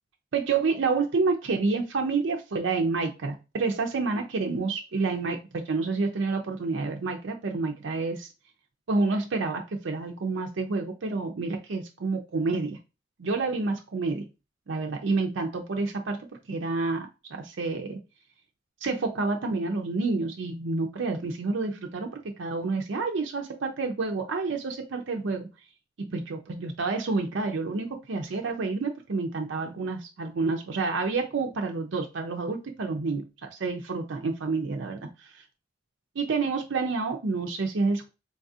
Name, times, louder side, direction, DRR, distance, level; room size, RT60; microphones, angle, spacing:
voice 1, 0.3-8.3 8.9-12.8 13.2-14.2 14.7-16.2 16.5-18.0 18.8-25.5 26.0-35.4 36.2-38.1, right 3 dB, 70° right, 2 dB, 0.5 m, -29 dB
3.9 x 2.4 x 2.7 m, 0.28 s
head